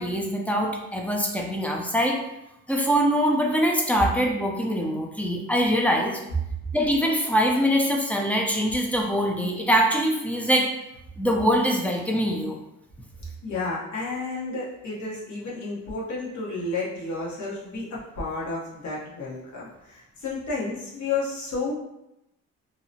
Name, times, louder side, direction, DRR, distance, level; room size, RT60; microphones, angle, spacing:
voice 1, 0.0-2.2 2.7-6.2 6.7-10.7 11.2-12.6, equal, 5° left, 1 dB, 0.4 m, -23 dB
voice 2, 13.4-21.8, left 3 dB, 70° left, -6 dB, 0.9 m, -31 dB
2.7 x 2.0 x 2.7 m, 0.88 s
cardioid pair, 90°, 30 cm